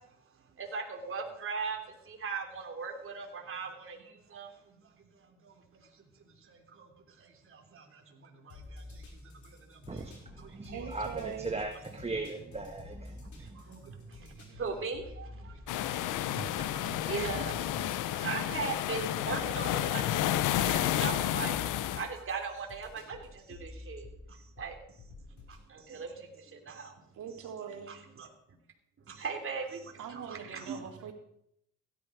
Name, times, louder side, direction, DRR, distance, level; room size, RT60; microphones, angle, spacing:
voice 1, 0.7-1.8 2.2-3.7 4.3-4.5 14.6-15.0 16.7-17.5 18.2-20.2 20.6-21.5 22.0-23.2 23.6-24.0 24.6-24.7 25.9-26.1 29.2-29.7 30.3-30.8, right 5 dB, 45° right, 2 dB, 3.2 m, -37 dB
sound 1, 8.5-25.6, left 2 dB, 70° left, 5.2 m, -50 dB
voice 2, 9.9-13.2 13.5-13.6, right 3 dB, 20° right, 5 dB, 1.5 m, -38 dB
voice 3, 10.7-11.5 27.1-28.0 30.0-31.1, right 7 dB, 75° right, 1 dB, 3.7 m, -42 dB
sound 2, 15.7-22.1, left 12 dB, 90° left, 0.8 m, -31 dB
17.0 x 12.5 x 5.0 m, 0.75 s
cardioid pair, 90°, 30 cm